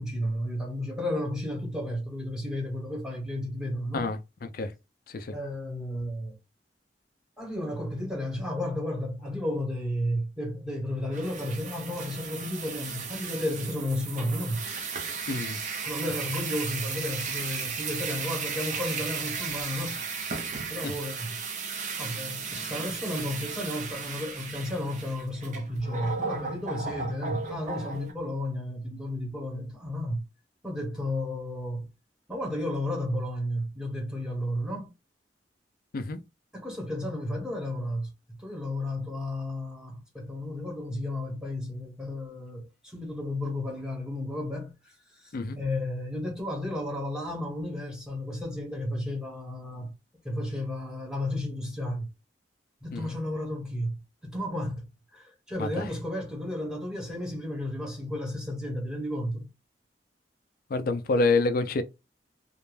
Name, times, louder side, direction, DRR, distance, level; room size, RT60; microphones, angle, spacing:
voice 1, 0.0-4.1 5.3-6.4 7.4-14.6 15.8-20.0 20.4-21.4 22.0-30.2 30.6-31.9 32.3-34.9 36.5-38.1 38.4-49.9 50.2-52.1 52.8-53.9 54.2-54.9 55.1-59.5, left 1 dB, 5° right, 1.0 m, -33 dB
voice 2, 3.9-4.7 5.1-5.3 15.3-15.6 20.8-20.9 35.9-36.2 45.3-45.6 52.9-53.1 55.6-55.8 60.7-61.8, left 3 dB, 55° left, 0.4 m, -27 dB
sound 1, 11.1-28.1, right 5 dB, 45° right, 0.6 m, -35 dB
2.5 x 2.1 x 3.1 m
head